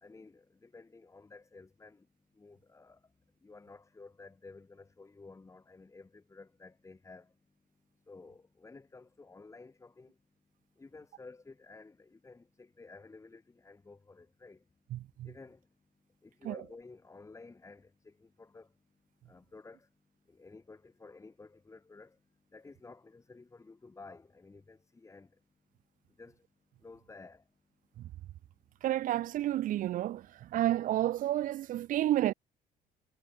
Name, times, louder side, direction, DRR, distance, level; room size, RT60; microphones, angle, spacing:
voice 1, 0.0-2.1 2.4-3.0 3.4-7.3 8.1-10.1 10.8-14.6 15.2-15.6 16.2-18.7 19.3-19.9 20.3-22.1 22.5-25.3 26.2-26.4 26.8-27.4, left 3 dB, 15° left, 1.7 m, -53 dB
voice 2, 14.9-15.3 16.4-16.6 28.0-28.1 28.8-32.3, right 13 dB, 55° right, 0.4 m, -31 dB
cardioid pair, 110°, 17 cm